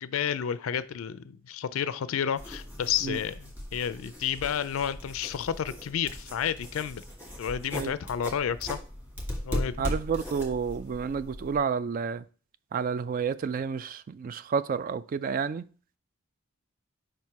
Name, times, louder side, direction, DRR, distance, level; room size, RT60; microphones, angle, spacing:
voice 1, 0.0-7.0 7.4-8.8 9.4-9.8, left 8 dB, 75° left, 0.4 m, -31 dB
sound 1, 2.4-11.6, left 1 dB, 10° right, 1.8 m, -38 dB
voice 2, 9.8-12.3 12.7-15.7, right 6 dB, 40° right, 0.3 m, -30 dB
5.1 x 4.4 x 4.6 m
head